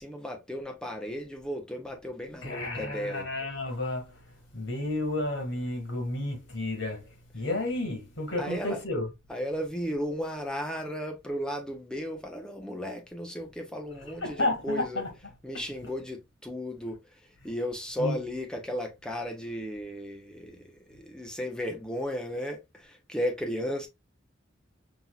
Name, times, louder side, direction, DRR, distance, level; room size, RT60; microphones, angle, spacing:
voice 1, 0.0-3.3 8.4-8.8 9.3-15.0 15.4-17.0 17.4-23.9, equal, 5° left, 0.7 m, -35 dB
voice 2, 2.4-4.2 4.5-7.1 7.3-9.1 14.2-15.1 18.0-18.2, left 2 dB, 85° left, 1.8 m, -31 dB
5.7 x 2.7 x 2.3 m
head